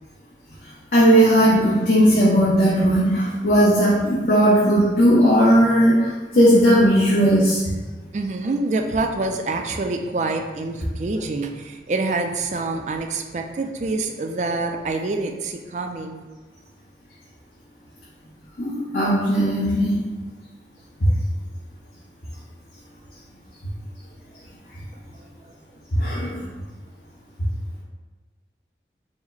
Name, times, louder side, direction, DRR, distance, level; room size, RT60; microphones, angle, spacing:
voice 1, 0.9-7.8 18.6-20.0 25.9-26.5, equal, 55° left, -9 dB, 0.9 m, -17 dB
voice 2, 8.1-16.3, right 3 dB, 40° right, 4 dB, 0.3 m, -26 dB
4.8 x 2.1 x 3.9 m, 1.3 s
head